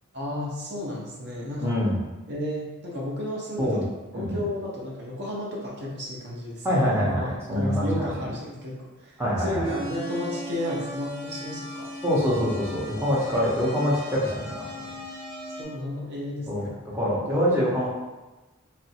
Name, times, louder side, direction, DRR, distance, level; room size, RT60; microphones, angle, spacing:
voice 1, 0.1-1.7 2.3-3.8 4.1-7.3 7.5-11.9 15.6-16.8 17.1-17.4, left 1 dB, 55° right, -4 dB, 0.8 m, -33 dB
voice 2, 1.6-2.0 3.6-3.8 4.1-4.5 6.6-8.3 9.2-9.7 12.0-14.7 16.5-17.9, equal, 10° right, -6 dB, 0.7 m, -25 dB
sound 1, 9.6-15.7, equal, 35° right, 1.0 m, -38 dB
3.0 x 2.5 x 2.8 m, 1.1 s
head